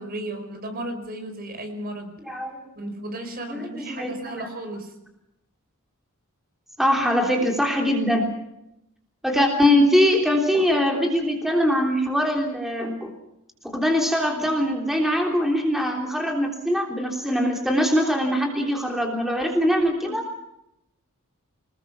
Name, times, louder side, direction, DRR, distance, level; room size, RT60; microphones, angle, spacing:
voice 1, 0.0-2.1 2.8-4.9 20.0-20.1, right 1 dB, 45° right, 6 dB, 5.1 m, -34 dB
voice 2, 2.2-2.6 3.5-4.5 6.8-8.3 9.2-13.1 13.6-20.2, equal, ahead, 1 dB, 3.4 m, -22 dB
27.0 x 20.5 x 6.0 m, 0.85 s
head